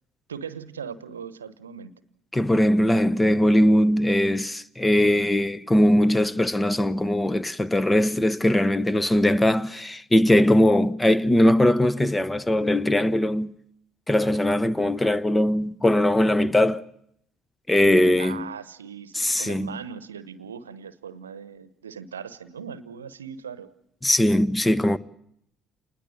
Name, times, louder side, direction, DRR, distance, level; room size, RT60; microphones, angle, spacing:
voice 1, 0.3-1.9 18.2-23.7, right 7 dB, 80° right, 0.9 m, -39 dB
voice 2, 2.3-13.5 14.1-16.8 17.7-18.5 19.1-19.7 24.0-25.0, left 1 dB, 15° left, 0.9 m, -20 dB
28.0 x 20.5 x 7.8 m
figure-of-eight pair, 55°, 0 cm